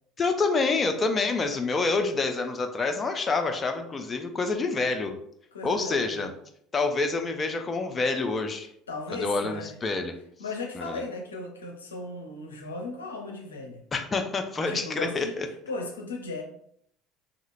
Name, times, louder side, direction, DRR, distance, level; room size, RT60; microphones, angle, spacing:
voice 1, 0.2-5.2 5.6-6.3 6.7-8.7 9.1-10.2 10.8-11.0 13.9-15.5, left 3 dB, 30° left, 6 dB, 0.4 m, -27 dB
voice 2, 5.5-6.3 8.9-9.7 10.4-13.8 14.7-15.4 15.7-16.4, left 3 dB, 85° left, 2 dB, 0.5 m, -36 dB
2.8 x 2.8 x 2.5 m, 0.69 s
hypercardioid pair, 65°, 0 cm